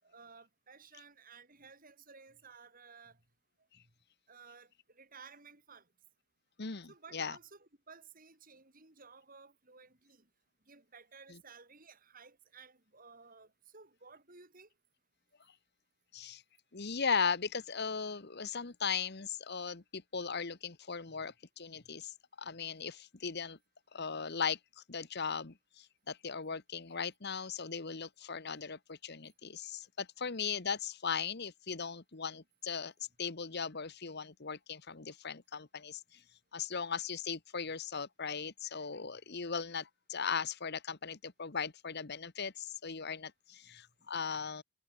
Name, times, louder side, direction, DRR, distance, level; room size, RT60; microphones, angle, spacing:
voice 1, 0.0-3.2 3.7-3.9 4.3-5.9 6.9-10.3 10.7-14.7 21.1-21.2 21.7-21.9 36.1-36.2 43.6-44.1, right 5 dB, 40° right, 5.4 m, -56 dB
voice 2, 6.6-7.4 11.3-11.4 16.1-16.4 16.7-23.6 23.9-32.9 33.2-36.2 36.5-44.6, left 6 dB, 50° left, 1.2 m, -38 dB
head